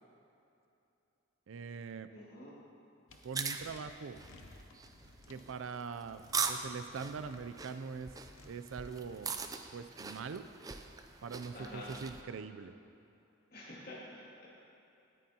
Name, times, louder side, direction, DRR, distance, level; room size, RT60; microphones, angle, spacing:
voice 1, 1.5-2.1 3.2-4.2 5.3-6.2 6.5-8.1 8.5-9.3 9.7-10.4 11.2-12.7, right 5 dB, 75° right, 11 dB, 0.4 m, -42 dB
voice 2, 2.1-2.6 11.5-11.9 13.5-14.5, left 1 dB, 50° left, -5 dB, 2.3 m, -48 dB
sound 1, 3.1-3.2 3.6-5.5 6.0-6.6 7.0-7.6 8.1-9.4, left 2 dB, 90° left, 0.8 m, -57 dB
sound 2, 3.1-12.2, right 5 dB, 20° right, 0.4 m, -41 dB
18.5 x 9.2 x 2.9 m, 2.8 s
head